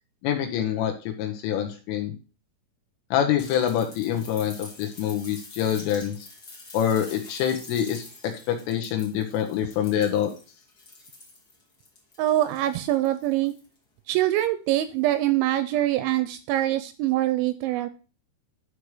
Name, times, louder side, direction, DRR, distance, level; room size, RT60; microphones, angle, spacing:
voice 1, 0.2-0.9 1.2-2.1 3.1-6.3 6.7-10.3, left 9 dB, 80° left, 3 dB, 3.6 m, -26 dB
sound 1, 3.4-13.8 15.1-15.2, left 2 dB, 35° left, 1.5 m, -46 dB
voice 2, 12.2-13.5 14.1-17.9, right 14 dB, 85° right, 12 dB, 2.7 m, -24 dB
10.5 x 4.8 x 4.8 m, 0.35 s
omnidirectional pair, 5.8 m